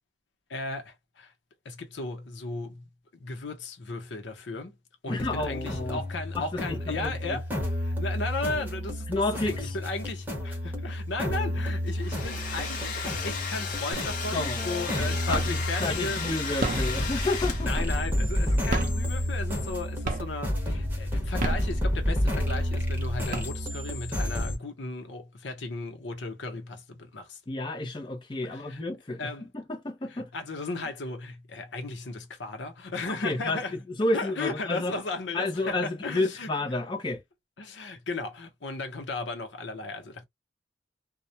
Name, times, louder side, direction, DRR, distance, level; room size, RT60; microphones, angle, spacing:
voice 1, 0.5-1.3 1.6-2.8 3.1-4.8 5.0-16.3 17.6-27.4 28.5-28.8 29.2-29.5 30.1-33.7 34.1-36.5 37.6-40.2, left 3 dB, 85° left, 0.8 m, -36 dB
voice 2, 5.1-6.0 6.3-7.4 9.1-9.6 14.3-17.7 18.2-18.3 27.5-30.3 33.2-34.9 35.3-37.2, left 2 dB, 25° left, 0.6 m, -31 dB
sound 1, 5.2-24.6, equal, 10° right, 0.9 m, -30 dB
Domestic sounds home sounds, 11.9-17.9, left 5 dB, 45° left, 0.9 m, -35 dB
sound 2, 13.9-14.4 14.8-15.8 16.4-18.2 18.6-19.7 20.0-20.6 21.2-22.3 22.8-22.9 23.1-24.0, right 2 dB, 45° right, 0.6 m, -33 dB
2.3 x 2.1 x 2.7 m
head